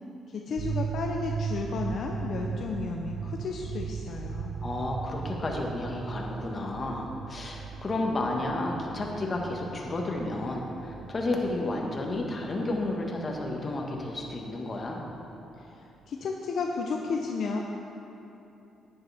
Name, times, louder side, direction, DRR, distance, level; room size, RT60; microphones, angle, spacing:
voice 1, 0.3-4.5 15.6-17.6, left 4 dB, 65° left, 1 dB, 0.7 m, -33 dB
sound 1, 0.6-15.4, right 6 dB, 75° right, 0.4 m, -38 dB
voice 2, 4.6-15.0, left 2 dB, 35° left, 0 dB, 1.5 m, -31 dB
10.5 x 9.6 x 3.5 m, 2.9 s
cardioid pair, 90°, 0 cm